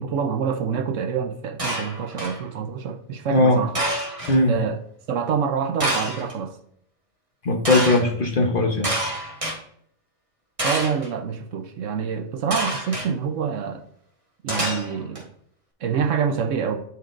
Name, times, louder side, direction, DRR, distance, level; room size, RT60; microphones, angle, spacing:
voice 1, 0.0-3.7 4.5-4.8 5.1-6.6 10.6-13.8 14.4-15.3 15.8-16.8, right 6 dB, 70° right, 7 dB, 1.0 m, -26 dB
sound 1, 1.6-2.4 3.7-4.4 5.8-6.3 7.6-8.0 8.8-9.6 10.6-11.1 12.5-13.1 14.5-15.2, right 1 dB, 25° right, 1.7 m, -27 dB
voice 2, 7.4-8.9, left 2 dB, 40° left, 2 dB, 1.0 m, -19 dB
10.5 x 4.5 x 2.5 m, 0.66 s
omnidirectional pair, 1.5 m